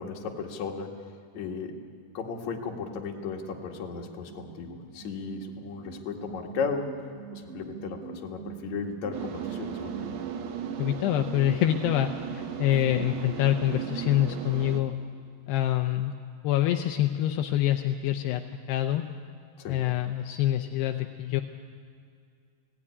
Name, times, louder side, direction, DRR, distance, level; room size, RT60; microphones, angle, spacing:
voice 1, 0.0-1.8 2.1-7.0 7.3-10.1 19.6-19.8, left 5 dB, 50° left, 0 dB, 2.8 m, -35 dB
sound 1, 4.3-10.3, right 9 dB, 35° right, 8.4 m, -42 dB
sound 2, 9.1-14.8, right 9 dB, 65° right, 2.1 m, -36 dB
voice 2, 10.8-15.0 15.5-16.1 16.4-18.4 18.7-19.0 19.7-21.4, left 12 dB, 80° left, 5 dB, 2.7 m, -26 dB
17.5 x 17.5 x 9.8 m, 2.2 s
omnidirectional pair, 4.9 m